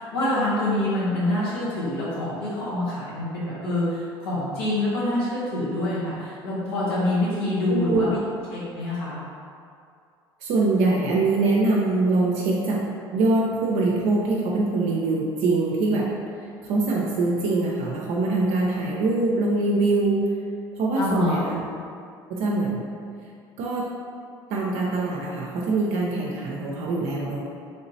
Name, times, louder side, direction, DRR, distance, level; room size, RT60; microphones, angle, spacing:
voice 1, 0.0-8.2 8.5-9.2 21.0-21.4, left 1 dB, 80° left, -9 dB, 0.8 m, -26 dB
voice 2, 7.7-8.1 10.4-16.2 16.7-20.3 20.8-21.6 22.3-22.8 23.6-23.9 24.5-27.4, right 3 dB, 60° right, -3 dB, 0.5 m, -23 dB
3.3 x 2.9 x 2.7 m, 2.4 s
hypercardioid pair, 65°, 13 cm